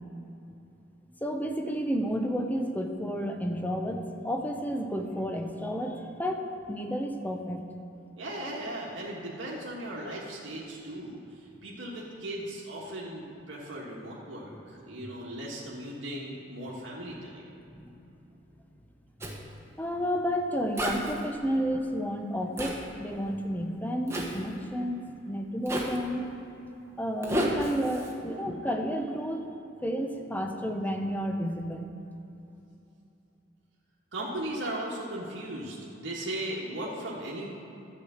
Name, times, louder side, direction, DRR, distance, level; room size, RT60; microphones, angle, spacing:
voice 1, 1.2-7.6 17.7-18.0 19.8-26.3 27.0-29.5 29.8-31.9, equal, 10° left, 4 dB, 0.8 m, -31 dB
voice 2, 8.2-17.5 34.1-37.5, right 1 dB, 90° right, -5 dB, 1.5 m, -37 dB
Zipper (clothing), 19.2-19.4 20.8-21.2 22.6-22.8 24.1-24.4 25.7-26.0 27.2-28.1, equal, 15° right, 1.2 m, -30 dB
12.0 x 5.0 x 7.9 m, 2.8 s
head